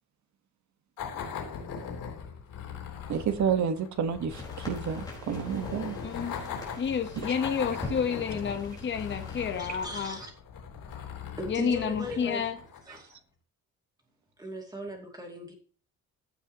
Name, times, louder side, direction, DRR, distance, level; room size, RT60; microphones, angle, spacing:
sound 1, 1.0-13.1, left 6 dB, 90° left, 3.6 m, -40 dB
voice 1, 3.1-6.0, right 7 dB, 60° right, 9 dB, 1.4 m, -30 dB
sound 2, 4.3-10.3, left 1 dB, 10° left, 4.4 m, -44 dB
voice 2, 6.0-6.4 6.8-10.2 11.5-12.6, left 7 dB, 35° left, 5 dB, 1.1 m, -30 dB
voice 3, 9.6-10.3 11.4-12.4 12.9-13.1 14.4-15.5, right 1 dB, 10° right, 2 dB, 2.5 m, -38 dB
15.0 x 7.7 x 3.0 m, 0.39 s
cardioid pair, 175°, 33 cm